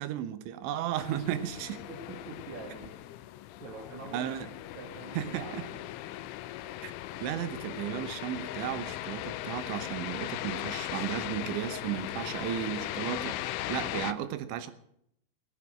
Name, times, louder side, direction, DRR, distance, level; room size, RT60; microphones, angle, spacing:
voice 1, 0.0-1.8 4.1-4.5 5.1-5.6 6.8-6.9 7.2-14.7, right 11 dB, 80° right, 12 dB, 3.3 m, -34 dB
sound 1, 1.0-14.1, left 14 dB, 90° left, 3.2 m, -38 dB
voice 2, 1.9-2.9 3.6-4.3 4.7-5.8, right 3 dB, 50° right, -1 dB, 2.7 m, -44 dB
18.0 x 9.7 x 7.8 m, 0.72 s
omnidirectional pair, 5.3 m